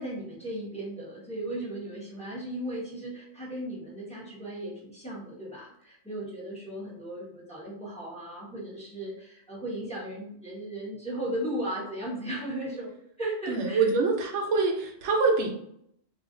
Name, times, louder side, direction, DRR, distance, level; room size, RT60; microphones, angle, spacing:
voice 1, 0.0-12.9 13.2-13.9, right 1 dB, 5° left, -6 dB, 0.9 m, -36 dB
voice 2, 13.5-15.5, right 4 dB, 85° right, 2 dB, 0.9 m, -25 dB
2.5 x 2.4 x 3.7 m, 0.71 s
omnidirectional pair, 1.2 m